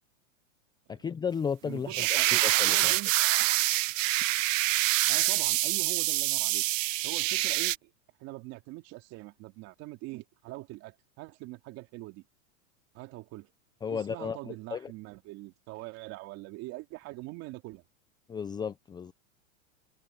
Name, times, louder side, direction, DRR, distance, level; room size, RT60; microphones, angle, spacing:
voice 1, 0.9-3.0 13.8-14.9 18.3-19.1, left 6 dB, 10° left, 0.6 m, -34 dB
voice 2, 1.6-3.1 5.1-6.6 7.0-7.9 8.2-12.2 12.9-13.5 13.9-17.8, right 20 dB, 40° right, 2.9 m, -43 dB
sound 1, 1.9-7.8, right 17 dB, 70° right, 0.7 m, -26 dB
supercardioid pair, 140°, 40 cm